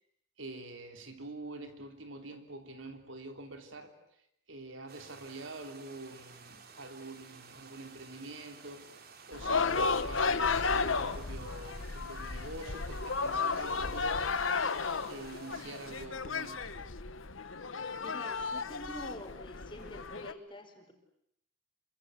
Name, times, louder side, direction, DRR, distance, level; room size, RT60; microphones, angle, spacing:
voice 1, 0.4-4.0 4.5-9.0 9.3-14.2 15.1-16.8, right 2 dB, 75° right, 6 dB, 3.3 m, -46 dB
sound 1, 4.9-16.1, right 5 dB, 50° right, 3.0 m, -54 dB
sound 2, 9.3-20.3, left 4 dB, 80° left, 1.3 m, -33 dB
voice 2, 18.0-20.9, left 1 dB, 25° left, 5 dB, 4.7 m, -46 dB
27.5 x 25.0 x 8.2 m, 0.74 s
head